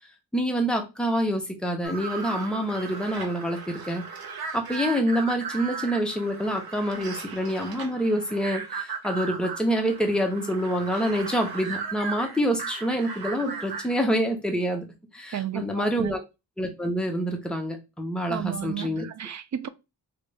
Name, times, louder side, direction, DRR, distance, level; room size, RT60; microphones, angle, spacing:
voice 1, 0.3-4.0 4.5-14.8 15.1-16.2 16.6-19.0, equal, ahead, 0.9 m, -27 dB
sound 1, 1.8-14.1, right 5 dB, 60° right, 0.9 m, -37 dB
voice 2, 15.3-16.2 18.3-19.7, right 11 dB, 45° right, 0.4 m, -33 dB
3.3 x 2.6 x 3.2 m
cardioid pair, 75°, 41 cm